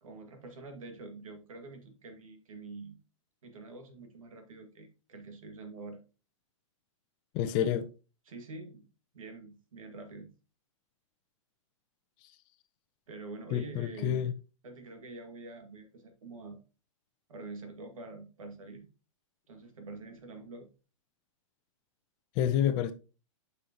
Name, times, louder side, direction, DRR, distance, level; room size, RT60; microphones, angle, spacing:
voice 1, 0.0-3.0 3.4-6.0 8.3-8.9 9.1-10.3 13.1-14.2 14.6-16.6 17.3-18.9 19.5-20.7, right 3 dB, 85° right, 2.2 m, -46 dB
voice 2, 7.3-7.9 13.5-14.3 22.4-22.9, left 10 dB, 30° left, 0.7 m, -28 dB
8.8 x 5.6 x 3.0 m
hypercardioid pair, 160°, 17 cm